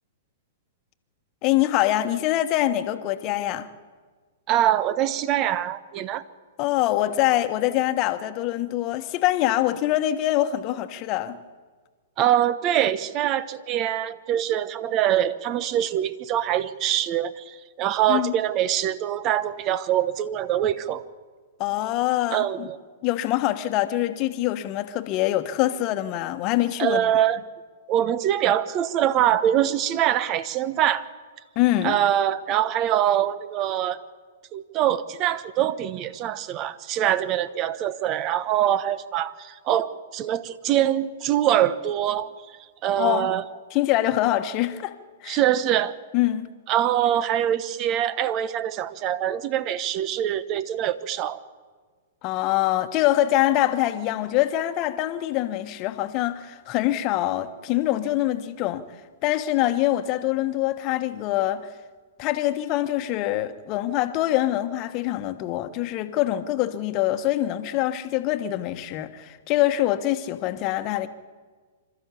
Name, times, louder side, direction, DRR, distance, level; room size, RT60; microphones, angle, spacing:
voice 1, 1.4-3.7 6.6-11.4 18.1-18.3 21.6-22.7 23.0-27.1 31.5-32.0 43.0-43.3 43.7-44.9 45.2-45.4 46.1-46.5 52.2-58.9 59.2-61.7 62.2-71.1, left 14 dB, 40° left, 1.3 m, -24 dB
voice 2, 4.5-6.2 12.2-21.0 22.3-22.8 26.8-27.4 27.9-31.0 31.8-34.0 34.5-42.3 42.8-43.4 45.3-45.9 46.7-51.4, right 11 dB, 35° right, 1.0 m, -24 dB
26.5 x 13.0 x 8.4 m
hypercardioid pair, 110°, 0 cm